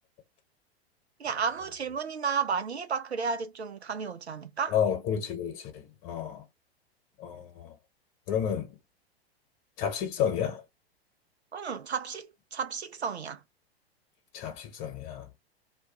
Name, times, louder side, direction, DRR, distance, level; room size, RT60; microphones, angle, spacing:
voice 1, 1.2-4.8 11.5-13.4, right 6 dB, 90° right, 0.5 m, -32 dB
voice 2, 4.7-6.4 7.2-7.8 8.3-8.8 9.8-10.6 14.3-15.3, left 8 dB, 35° left, 1.0 m, -31 dB
2.3 x 2.2 x 2.9 m
figure-of-eight pair, 95°, 31 cm